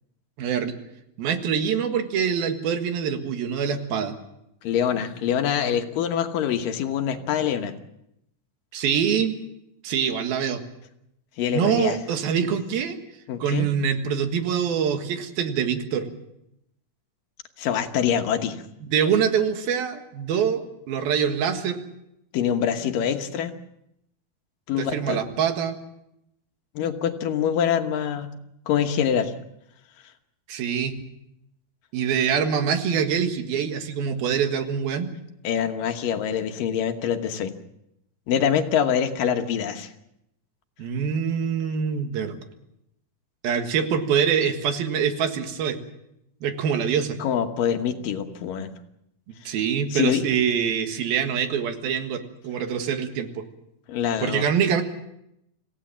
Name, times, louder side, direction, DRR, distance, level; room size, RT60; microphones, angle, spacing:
voice 1, 0.4-0.7 1.2-4.2 8.7-9.4 9.8-10.6 11.5-13.0 13.4-16.1 18.9-21.8 24.8-25.8 30.5-30.9 31.9-35.1 40.8-42.4 43.4-45.8 46.4-47.2 49.5-53.4 54.2-54.8, right 7 dB, 80° right, 6 dB, 3.5 m, -24 dB
voice 2, 4.6-7.7 11.4-12.0 13.3-13.7 17.6-18.6 22.3-23.5 24.7-25.2 26.8-28.3 28.7-29.3 35.4-37.5 38.3-39.9 47.2-48.7 49.5-49.6 49.9-50.3 53.9-54.5, left 8 dB, 70° left, 7 dB, 2.8 m, -25 dB
26.5 x 16.5 x 7.4 m, 0.83 s
omnidirectional pair, 4.3 m